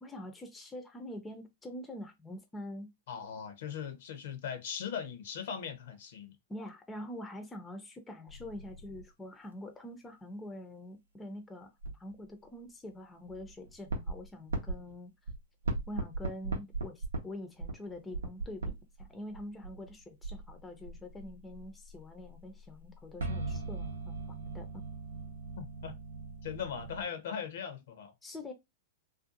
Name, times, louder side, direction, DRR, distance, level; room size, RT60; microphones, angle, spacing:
voice 1, 0.0-2.9 6.5-15.1 15.9-24.8 28.2-28.5, left 1 dB, 15° left, 0.5 m, -45 dB
voice 2, 3.1-6.3 25.6-25.9 26.4-28.1, left 7 dB, 65° left, 0.7 m, -39 dB
sound 1, 8.3-9.0 11.8-12.1 13.3-14.9 15.3-15.4 15.6-17.2 17.6-19.1 19.3-27.0, right 3 dB, 90° right, 0.6 m, -39 dB
2.5 x 2.3 x 2.5 m
hypercardioid pair, 110°, 0 cm